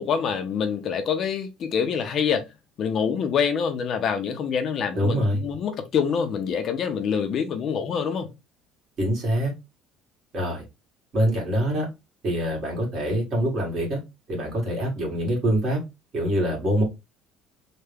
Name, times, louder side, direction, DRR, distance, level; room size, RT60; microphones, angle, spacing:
voice 1, 0.0-2.5 2.8-8.3, left 7 dB, 40° left, 0.5 m, -26 dB
voice 2, 5.0-5.4 9.0-9.5 10.3-10.7 11.1-11.9 12.2-14.0 14.3-15.8 16.1-16.8, equal, 40° right, 1.7 m, -24 dB
3.3 x 2.1 x 3.3 m
cardioid pair, 155°, 0 cm